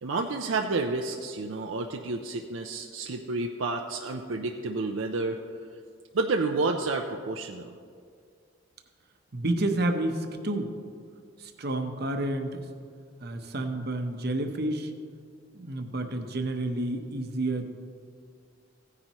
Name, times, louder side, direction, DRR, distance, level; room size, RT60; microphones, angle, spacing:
voice 1, 0.0-5.4 6.1-7.8, right 3 dB, 75° right, 3 dB, 0.5 m, -30 dB
voice 2, 9.3-10.7 11.4-12.6 13.2-14.9 15.5-17.7, right 1 dB, 55° right, 5 dB, 0.9 m, -30 dB
16.0 x 9.7 x 3.0 m, 2.2 s
head